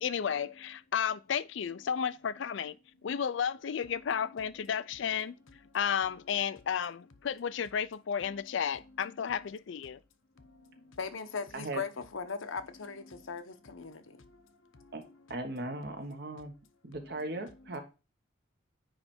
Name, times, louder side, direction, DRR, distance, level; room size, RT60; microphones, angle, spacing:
voice 1, 0.0-2.8 3.0-5.3 5.7-10.0, left 7 dB, 65° left, 0.4 m, -33 dB
voice 2, 11.0-13.4 13.7-14.0, left 5 dB, 85° left, 1.0 m, -38 dB
voice 3, 15.3-16.5 16.8-17.8, right 2 dB, 55° right, 1.3 m, -38 dB
9.7 x 3.3 x 4.3 m
head